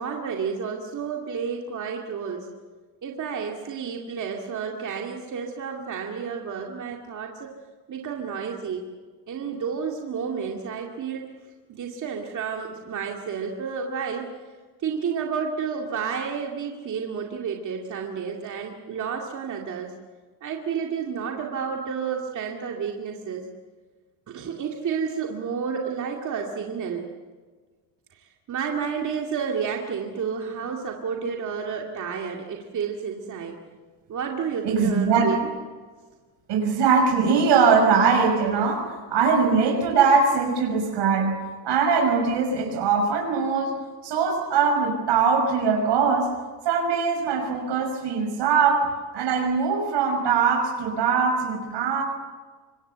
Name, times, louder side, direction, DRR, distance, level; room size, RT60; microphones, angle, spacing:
voice 1, 0.0-2.5 3.0-7.5 7.9-8.9 9.3-11.2 11.7-14.3 14.8-19.9 20.4-23.5 24.3-27.0 28.5-33.5 34.1-35.5, right 6 dB, 40° right, 1 dB, 2.3 m, -30 dB
voice 2, 34.6-35.3 36.5-38.8 39.1-41.3 41.6-43.7 44.0-46.3 46.6-48.8 49.1-52.0, right 5 dB, 65° right, 2 dB, 5.7 m, -21 dB
26.0 x 23.5 x 8.0 m, 1.4 s
cardioid pair, 160°, 45 cm